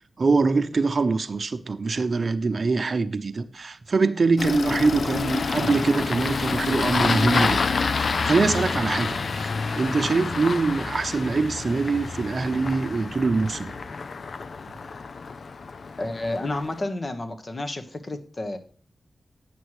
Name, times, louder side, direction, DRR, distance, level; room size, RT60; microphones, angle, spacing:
voice 1, 0.2-13.7, right 4 dB, 60° right, 0.7 m, -24 dB
Engine starting, 4.4-16.8, left 4 dB, 70° left, 0.4 m, -28 dB
sound 1, 5.3-13.9, equal, 20° left, 2.3 m, -43 dB
voice 2, 16.0-18.6, left 2 dB, 45° left, 1.3 m, -30 dB
9.1 x 6.2 x 4.9 m
cardioid pair, 40°, 0 cm